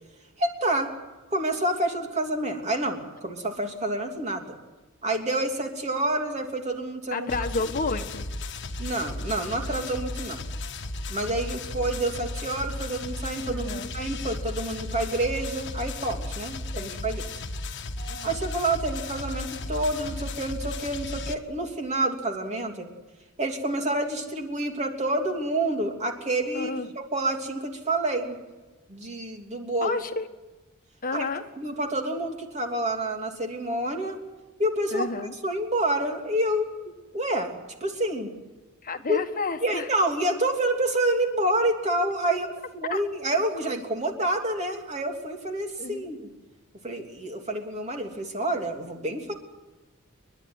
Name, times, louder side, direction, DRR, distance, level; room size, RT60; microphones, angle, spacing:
voice 1, 0.4-0.9 1.3-4.5 5.0-7.3 8.8-10.4 11.1-17.2 18.2-22.9 23.4-26.7 27.1-28.4 28.9-30.0 31.1-31.3 31.6-34.2 34.6-35.1 35.4-36.7 37.1-37.5 37.8-38.3 39.1-39.2 39.6-42.5 42.7-46.3 46.8-49.3, right 1 dB, 35° right, 3 dB, 3.1 m, -28 dB
voice 2, 7.1-8.3 13.4-13.9 16.7-17.0 18.1-18.4 26.5-26.9 29.8-30.3 31.0-31.4 34.9-35.3 38.8-39.9 42.8-43.0 45.8-46.1, left 3 dB, 40° left, 7 dB, 1.5 m, -31 dB
sound 1, 7.3-21.3, left 2 dB, 55° left, 1.5 m, -35 dB
Doorbell, 18.0-22.8, right 4 dB, 75° right, 2.0 m, -46 dB
29.5 x 12.0 x 9.6 m, 1.2 s
head